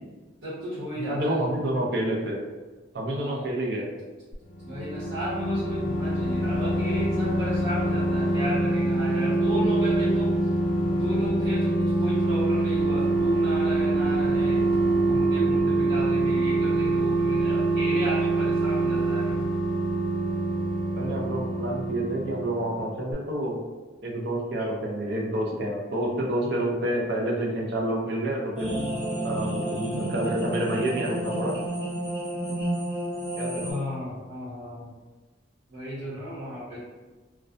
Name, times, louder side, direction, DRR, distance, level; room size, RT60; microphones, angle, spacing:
voice 1, 0.4-1.4 3.0-3.4 4.6-10.3 10.8-14.7 15.0-19.4 26.4-26.7 33.6-34.9 35.7-36.8, equal, 90° right, -9 dB, 1.0 m, -33 dB
voice 2, 1.1-2.4 2.9-4.0 20.9-23.6 24.0-28.7 29.2-31.6 33.4-33.6, right 1 dB, 55° right, -2 dB, 0.5 m, -28 dB
sound 1, 4.3-22.8 23.1-23.2, right 2 dB, 45° left, 0.4 m, -25 dB
sound 2, 28.6-33.7, right 1 dB, 10° right, 0.9 m, -30 dB
2.3 x 2.1 x 2.5 m, 1.3 s
head